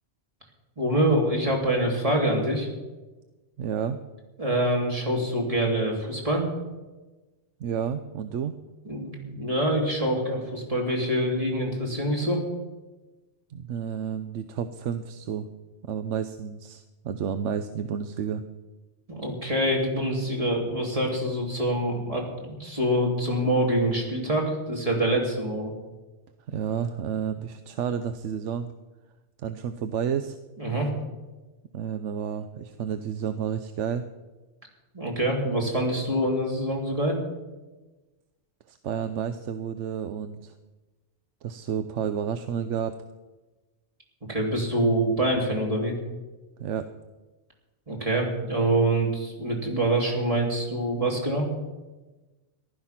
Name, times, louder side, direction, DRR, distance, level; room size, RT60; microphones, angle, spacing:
voice 1, 0.8-2.7 4.4-6.4 8.8-12.4 19.1-25.7 30.6-30.9 34.9-37.2 44.3-45.9 47.9-51.5, right 1 dB, 30° right, -1 dB, 3.2 m, -25 dB
voice 2, 3.6-4.0 7.6-8.6 13.5-15.5 15.8-18.4 26.5-28.7 29.4-30.4 31.7-34.1 38.7-40.5 41.4-43.0 46.6-46.9, right 8 dB, 85° right, 10 dB, 1.0 m, -31 dB
15.0 x 12.0 x 5.8 m, 1.2 s
omnidirectional pair, 1.2 m